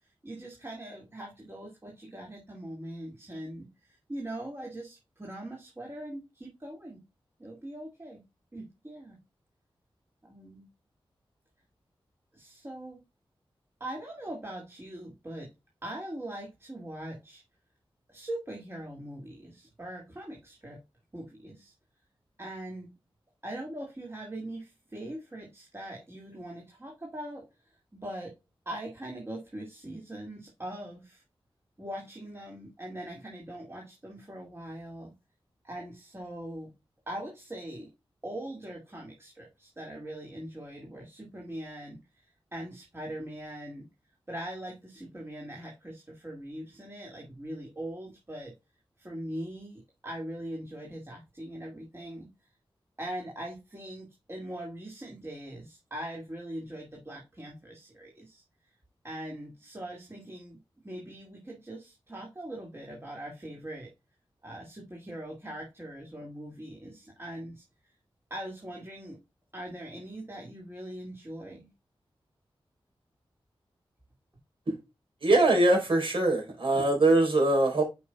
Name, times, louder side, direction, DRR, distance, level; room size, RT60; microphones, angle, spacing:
voice 1, 0.2-7.0 7.4-8.2 8.5-9.2 10.2-10.6 12.3-13.0 13.8-15.5 15.8-17.4 18.1-20.8 21.1-21.7 22.4-22.9 23.4-27.5 27.9-28.3 28.7-31.2 31.8-35.1 35.6-36.7 37.1-37.9 38.2-43.8 44.3-48.5 49.0-52.3 53.0-58.4 59.0-60.6 60.8-63.9 64.4-67.6 68.3-69.2 69.5-71.7, right 1 dB, 25° right, 2.3 m, -41 dB
voice 2, 75.2-77.8, right 2 dB, 65° right, 4.3 m, -22 dB
9.8 x 5.5 x 2.3 m
wide cardioid pair, 100°, 10 cm